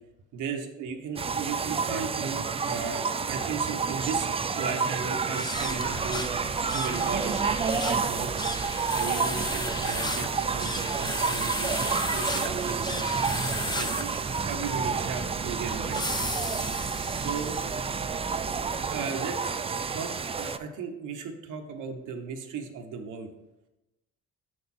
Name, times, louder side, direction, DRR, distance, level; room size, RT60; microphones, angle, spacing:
voice 1, 0.3-4.3 4.5-6.3 6.7-7.4 7.9-8.4 8.9-11.8 12.1-13.1 13.7-14.1 14.5-16.1 17.1-17.6 18.9-19.6 19.9-23.3, right 5 dB, 85° right, 4 dB, 1.1 m, -36 dB
sound 1, 1.2-20.6, right 5 dB, 20° right, 0.3 m, -30 dB
sound 2, 5.3-17.8, left 2 dB, 15° left, 0.7 m, -36 dB
sound 3, 5.5-18.9, right 5 dB, 45° right, 0.8 m, -42 dB
6.7 x 6.5 x 4.3 m, 0.97 s
cardioid pair, 90°, 30 cm